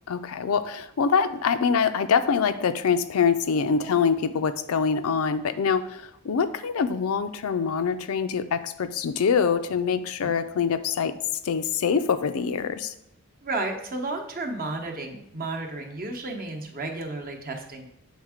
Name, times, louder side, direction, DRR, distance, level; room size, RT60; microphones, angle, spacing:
voice 1, 0.1-11.1 11.4-12.9, left 6 dB, 75° left, 11 dB, 0.4 m, -24 dB
voice 2, 13.4-17.9, right 2 dB, 40° right, 3 dB, 0.9 m, -32 dB
7.3 x 3.5 x 4.9 m, 0.77 s
head